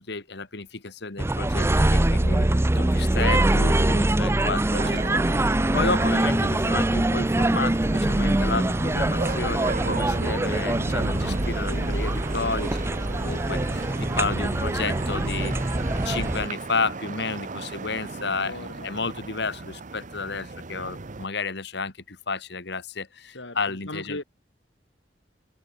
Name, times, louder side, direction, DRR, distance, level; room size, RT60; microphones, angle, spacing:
voice 1, 0.0-2.5 2.7-12.8 13.1-15.6 16.0-24.2, left 4 dB, 65° left, 2.5 m, -31 dB
sound 1, 1.2-16.5, right 1 dB, 15° right, 0.6 m, -23 dB
voice 2, 2.7-3.2 18.2-18.9 23.3-24.2, left 2 dB, 85° left, 5.5 m, -39 dB
sound 2, 4.7-21.3, right 3 dB, 45° right, 1.0 m, -34 dB
head